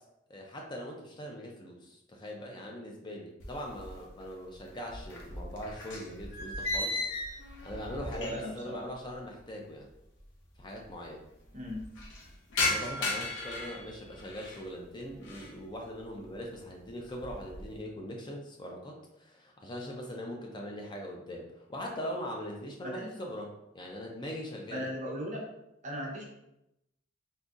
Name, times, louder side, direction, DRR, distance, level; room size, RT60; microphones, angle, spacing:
voice 1, 0.3-9.9 10.6-11.2 12.6-24.9, equal, 25° left, 0 dB, 0.4 m, -41 dB
sound 1, 3.4-4.3 4.6-8.7 8.9-9.0 9.9-10.0 10.2-10.3 10.5-11.0 11.4-14.6 15.1-15.6 16.0-16.4 16.8-17.7, left 2 dB, 65° left, 0.7 m, -36 dB
voice 2, 8.1-8.8 11.5-11.8 22.8-23.1 24.7-25.4 25.8-26.2, equal, 40° right, -2 dB, 0.8 m, -37 dB
3.8 x 2.7 x 2.4 m, 0.86 s
head